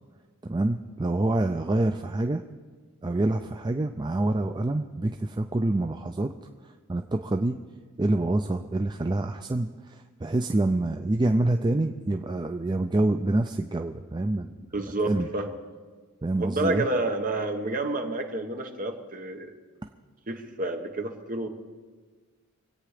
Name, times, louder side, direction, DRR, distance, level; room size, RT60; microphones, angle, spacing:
voice 1, 0.4-2.4 3.0-6.3 6.9-7.6 8.0-15.3 16.2-16.8, right 2 dB, 20° right, 6 dB, 0.4 m, -26 dB
voice 2, 14.7-15.5 16.4-19.5 20.3-21.5, right 2 dB, 40° right, 4 dB, 1.3 m, -29 dB
25.0 x 8.8 x 5.0 m, 1.4 s
head